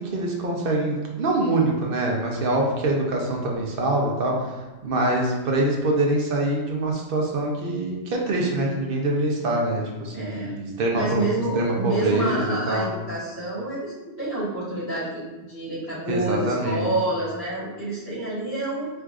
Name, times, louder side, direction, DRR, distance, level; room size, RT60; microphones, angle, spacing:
voice 1, 0.0-4.6 4.8-11.2 11.5-12.9 16.1-16.9, right 2 dB, 55° right, -1 dB, 0.7 m, -24 dB
voice 2, 10.1-10.5 10.9-18.9, right 1 dB, 55° left, -11 dB, 1.8 m, -28 dB
4.5 x 2.4 x 2.4 m, 1.1 s
omnidirectional pair, 1.3 m